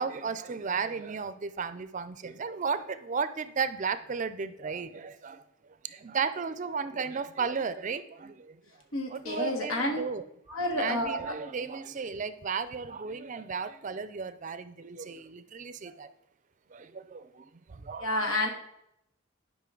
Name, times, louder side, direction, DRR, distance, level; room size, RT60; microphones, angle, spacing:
voice 1, 0.0-5.4 5.8-8.8 9.1-10.2 10.8-16.1 16.7-18.1, right 5 dB, 35° right, 13 dB, 0.4 m, -34 dB
voice 2, 8.9-10.0 10.5-11.3 18.0-18.5, left 1 dB, 90° left, 3 dB, 1.8 m, -29 dB
11.5 x 5.1 x 3.8 m, 0.79 s
head